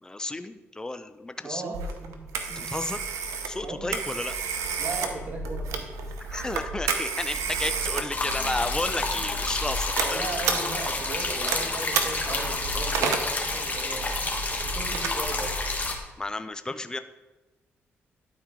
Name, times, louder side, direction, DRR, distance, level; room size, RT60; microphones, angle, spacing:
voice 1, 0.0-1.8 2.6-3.0 3.5-4.3 6.3-10.3 16.2-17.0, left 2 dB, 15° left, 10 dB, 0.5 m, -32 dB
voice 2, 1.4-2.9 3.6-4.1 4.8-5.9 9.2-9.4 10.0-15.6, right 3 dB, 45° right, 1 dB, 1.8 m, -37 dB
Telephone, 1.7-16.0, right 4 dB, 90° right, 0.8 m, -32 dB
sound 1, 8.1-15.9, left 3 dB, 30° left, 1.5 m, -30 dB
11.5 x 4.4 x 3.7 m, 1.1 s
cardioid pair, 65°, 5 cm